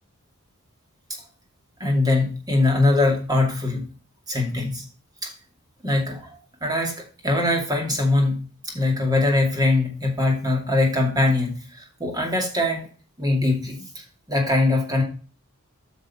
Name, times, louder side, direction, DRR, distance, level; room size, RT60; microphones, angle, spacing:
voice 1, 1.8-3.8 4.3-4.8 5.2-5.3 5.8-12.9 13.2-15.0, left 2 dB, 20° right, 1 dB, 2.4 m, -22 dB
8.5 x 6.1 x 4.3 m, 0.37 s
head